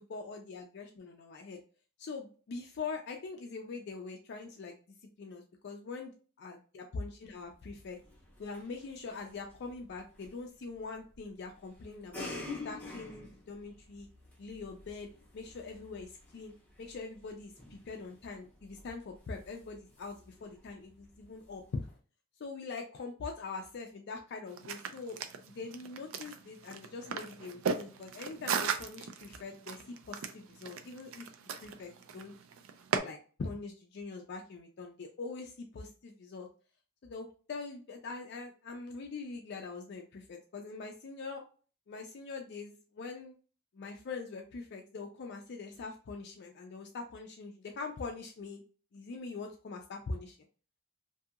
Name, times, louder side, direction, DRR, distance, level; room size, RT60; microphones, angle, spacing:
voice 1, 0.0-1.6 2.0-4.8 5.2-6.1 6.4-8.0 8.4-12.3 12.6-14.1 14.4-15.1 15.3-16.5 16.8-21.9 22.4-25.2 25.5-29.8 30.1-31.3 31.6-32.3 33.0-36.5 37.0-41.4 41.9-43.3 43.7-48.6 48.9-50.4, left 4 dB, 55° left, 3 dB, 0.4 m, -43 dB
sound 1, 7.3-22.0, left 2 dB, 10° left, 0.9 m, -50 dB
sound 2, 24.5-33.0, right 6 dB, 75° right, 0.4 m, -37 dB
2.8 x 2.6 x 2.3 m, 0.38 s
head